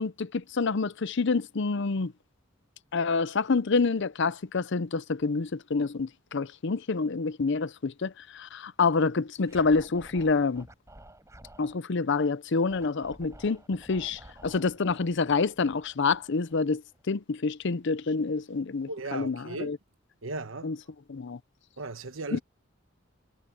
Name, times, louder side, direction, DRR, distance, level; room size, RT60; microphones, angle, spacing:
voice 1, 0.0-2.1 2.9-10.7 11.6-16.8 17.1-19.8 20.6-20.8 21.1-21.4 22.3-22.4, left 4 dB, 60° left, 0.6 m, -27 dB
Scratching (performance technique), 9.5-11.8 12.7-17.0, right 1 dB, 15° right, 4.6 m, -52 dB
voice 2, 18.9-19.7 20.2-20.7 21.8-22.4, right 3 dB, 75° right, 1.2 m, -36 dB
head